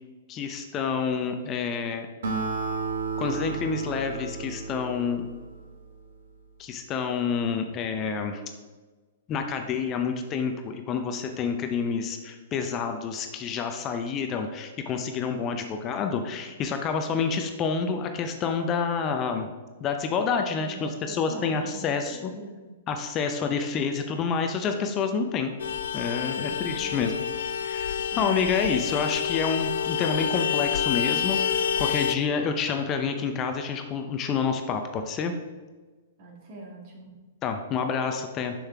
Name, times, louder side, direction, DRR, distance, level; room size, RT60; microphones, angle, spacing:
voice 1, 0.3-2.1 3.2-5.3 6.6-8.4 9.3-19.5 19.8-22.3 22.9-25.5 25.9-27.1 27.6-35.3 37.4-38.5, left 6 dB, 30° left, 6 dB, 0.7 m, -28 dB
Acoustic guitar, 2.2-5.8, right 4 dB, 70° right, 1.2 m, -32 dB
voice 2, 20.5-22.8 26.4-27.1 28.1-28.5 36.2-37.1, right 2 dB, 50° right, -1 dB, 2.1 m, -43 dB
Vehicle horn car horn honking, 25.6-32.2, left 8 dB, 70° left, 0.3 m, -28 dB
6.5 x 6.4 x 3.5 m, 1.3 s
hypercardioid pair, 115°, 0 cm